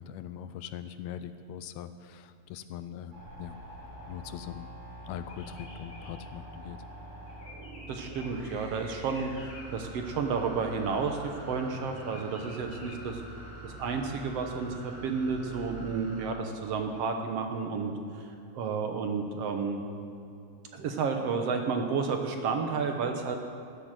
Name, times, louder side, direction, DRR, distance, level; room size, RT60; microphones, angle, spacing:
voice 1, 0.0-3.6 4.1-4.7 5.0-6.8, left 10 dB, 80° left, 12 dB, 1.8 m, -41 dB
sound 1, 3.1-16.3, right 1 dB, 50° right, 3.9 m, -45 dB
sound 2, 5.3-8.4 9.0-9.6 11.9-13.0, left 3 dB, 35° left, 2.2 m, -51 dB
voice 2, 7.9-13.2 13.6-19.8 20.7-23.4, right 5 dB, 65° right, 4 dB, 1.9 m, -31 dB
13.0 x 11.5 x 7.5 m, 2.6 s
omnidirectional pair, 3.3 m